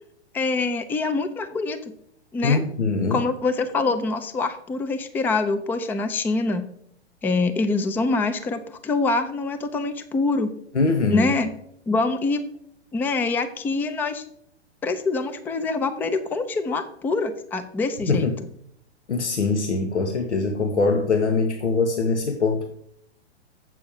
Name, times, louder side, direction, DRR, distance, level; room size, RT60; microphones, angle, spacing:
voice 1, 0.3-1.8 2.3-2.6 3.1-6.7 7.2-10.5 11.1-11.5 11.9-12.4 12.9-14.2 14.8-18.3, left 3 dB, 5° left, 9 dB, 0.4 m, -25 dB
voice 2, 2.4-3.3 10.7-11.3 18.1-18.4 19.1-22.7, left 4 dB, 90° left, 6 dB, 1.3 m, -22 dB
7.8 x 6.2 x 7.1 m, 0.69 s
hypercardioid pair, 125°, 34 cm